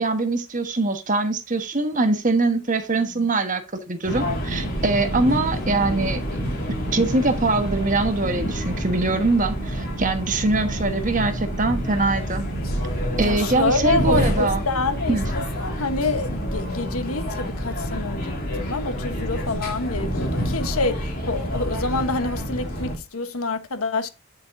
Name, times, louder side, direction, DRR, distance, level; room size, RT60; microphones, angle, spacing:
voice 1, 0.0-6.2 6.9-12.4 13.2-14.6 15.1-15.3, right 3 dB, 35° right, 1.3 m, -23 dB
sound 1, 4.0-23.0, equal, 45° left, 3.9 m, -28 dB
voice 2, 13.2-24.1, left 3 dB, 75° left, 1.2 m, -27 dB
9.7 x 7.1 x 2.7 m
head